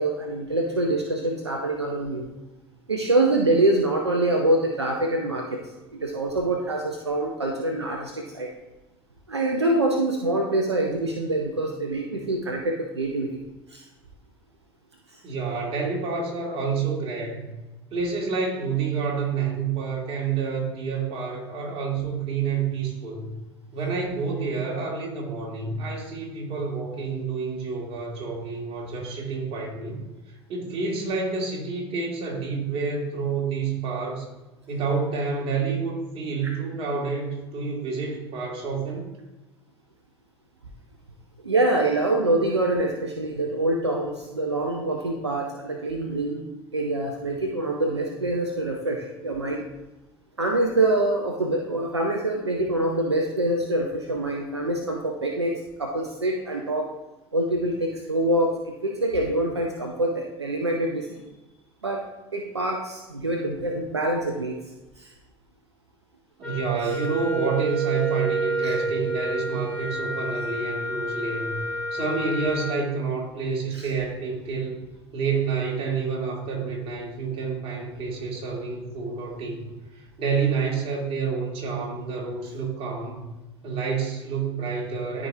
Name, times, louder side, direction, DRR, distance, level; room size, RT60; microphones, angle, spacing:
voice 1, 0.0-2.3 2.9-5.6 5.9-8.5 9.3-13.4 13.7-13.8 41.4-46.4 46.7-49.7 50.4-55.5 55.8-56.9 57.3-61.1 61.8-62.0 62.3-64.6 65.0-65.1 68.6-68.7 73.7-73.8, right 2 dB, 90° right, 2 dB, 0.7 m, -25 dB
voice 2, 15.2-17.6 17.9-23.3 23.7-30.0 30.5-34.3 34.7-39.1 66.4-74.8 75.1-83.2 83.6-85.3, right 5 dB, 45° right, -2 dB, 2.7 m, -29 dB
Wind instrument woodwind instrument, 66.4-72.9, right 3 dB, 5° left, 2.9 m, -29 dB
12.5 x 5.0 x 2.8 m, 1.0 s
figure-of-eight pair, 70°, 14 cm